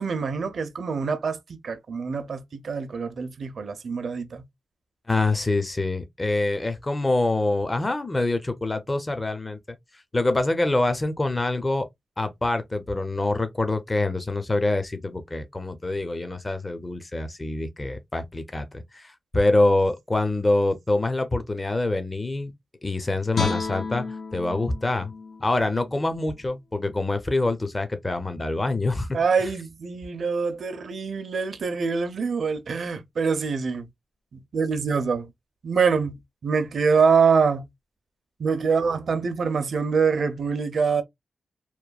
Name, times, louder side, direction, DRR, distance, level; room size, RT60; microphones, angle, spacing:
voice 1, 0.0-4.4 29.1-33.9 34.3-35.3 35.6-37.7 38.4-41.0, right 5 dB, 70° right, 0.5 m, -25 dB
voice 2, 5.1-9.6 10.1-11.9 12.2-22.5 22.8-24.0 24.3-25.1 25.4-29.2, left 2 dB, 30° left, 0.6 m, -25 dB
Guitar, 23.3-26.5 26.9-27.1, left 5 dB, 75° left, 0.7 m, -32 dB
3.0 x 2.2 x 2.3 m
cardioid pair, 65°, 0 cm